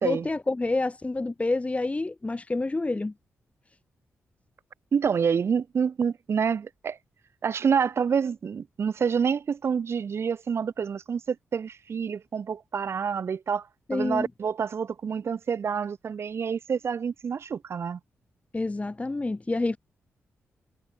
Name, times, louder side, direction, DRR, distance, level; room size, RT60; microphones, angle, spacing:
voice 1, 0.0-3.1 13.9-14.3 18.5-19.8, left 2 dB, 25° left, 1.4 m, -28 dB
voice 2, 4.9-7.0 7.4-13.7 13.9-18.0, right 6 dB, 55° right, 0.5 m, -27 dB
cardioid pair, 55°, 5 cm